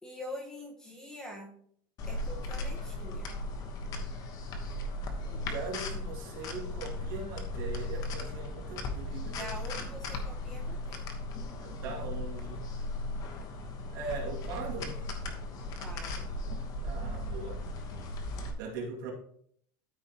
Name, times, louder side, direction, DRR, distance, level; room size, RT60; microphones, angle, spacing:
voice 1, 0.0-1.6 2.1-3.3 9.4-11.0 15.8-16.3, equal, 5° left, -1 dB, 1.3 m, -44 dB
sound 1, 2.0-18.5, left 2 dB, 35° left, 1.2 m, -37 dB
voice 2, 5.3-9.5 11.6-12.7 13.9-15.1 16.8-17.7 18.6-19.1, right 4 dB, 75° right, -1 dB, 2.4 m, -40 dB
13.0 x 4.8 x 2.9 m, 0.64 s
supercardioid pair, 160°, 11 cm